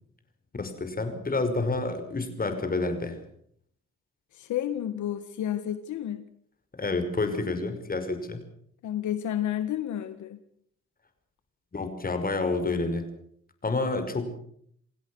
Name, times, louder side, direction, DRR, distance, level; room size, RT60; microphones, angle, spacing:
voice 1, 0.5-3.2 6.8-8.4 11.7-13.1 13.6-14.3, left 3 dB, 30° left, 8 dB, 5.6 m, -29 dB
voice 2, 4.3-6.3 8.8-10.4, left 11 dB, 75° left, 11 dB, 1.7 m, -31 dB
29.0 x 16.5 x 6.4 m, 0.66 s
cardioid pair, 90°, 30 cm